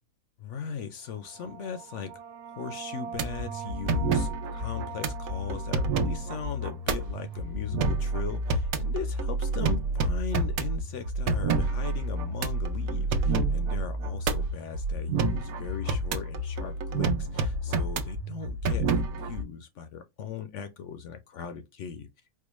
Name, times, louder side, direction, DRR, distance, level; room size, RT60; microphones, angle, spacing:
voice 1, 0.4-2.2 2.5-22.1, left 6 dB, 65° left, 0.8 m, -39 dB
sound 1, 1.1-8.3, right 7 dB, 55° right, 0.7 m, -44 dB
sound 2, 3.1-19.4, right 2 dB, 70° right, 1.1 m, -29 dB
4.6 x 2.2 x 3.0 m
omnidirectional pair, 1.6 m